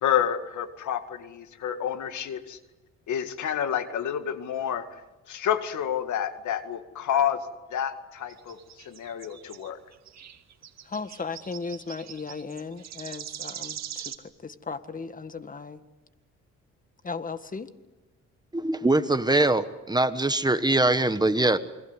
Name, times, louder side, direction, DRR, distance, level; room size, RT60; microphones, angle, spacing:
voice 1, 0.0-2.6 3.1-4.9 5.3-7.4 7.7-8.6 8.9-9.8, left 9 dB, 75° left, 9 dB, 2.1 m, -29 dB
sound 1, 8.3-14.2, right 9 dB, 60° right, 2.2 m, -41 dB
voice 2, 10.8-15.8 17.0-17.7, left 4 dB, 25° left, 11 dB, 1.7 m, -36 dB
voice 3, 18.5-21.6, right 2 dB, 15° right, 11 dB, 1.3 m, -22 dB
28.5 x 22.0 x 8.1 m, 1.1 s
cardioid pair, 90°, 30 cm